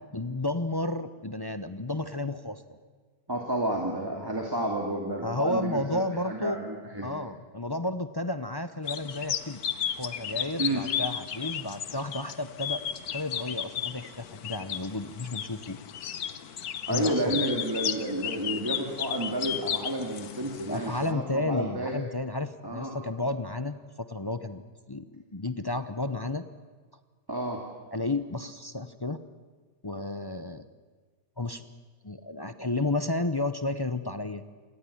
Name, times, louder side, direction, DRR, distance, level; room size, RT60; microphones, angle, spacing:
voice 1, 0.1-2.6 5.2-6.6 7.0-9.6 10.0-12.8 13.1-15.8 16.9-17.4 20.7-24.6 24.9-26.4 27.9-29.2 29.8-30.6 31.4-31.6 32.0-34.4, left 2 dB, 30° left, 11 dB, 0.4 m, -32 dB
voice 2, 3.3-7.1 10.6-10.9 16.9-22.0 22.6-23.0 27.3-27.6, right 1 dB, 15° right, 1 dB, 2.6 m, -31 dB
sound 1, 8.8-21.1, left 9 dB, 70° left, 1.5 m, -34 dB
27.0 x 18.5 x 10.0 m, 1.5 s
omnidirectional pair, 1.7 m